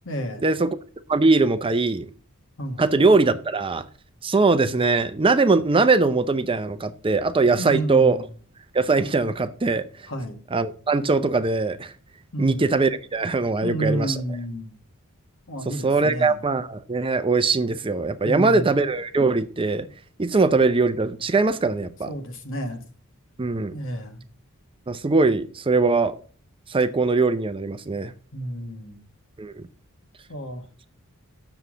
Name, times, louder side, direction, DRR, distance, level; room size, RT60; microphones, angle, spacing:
voice 1, 0.1-0.4 2.6-2.8 7.6-8.3 10.1-10.4 12.3-12.6 13.6-14.7 15.5-16.4 18.2-18.7 22.1-22.8 23.7-24.2 28.3-29.0 30.3-30.7, right 1 dB, 60° left, 1.6 m, -30 dB
voice 2, 1.1-2.1 2.8-3.8 4.2-8.2 8.7-9.8 10.5-11.9 12.4-14.2 15.8-19.9 20.2-22.1 23.4-23.7 24.9-26.1 26.7-28.1 29.4-29.5, right 3 dB, 25° right, 0.6 m, -21 dB
7.9 x 7.0 x 5.0 m
head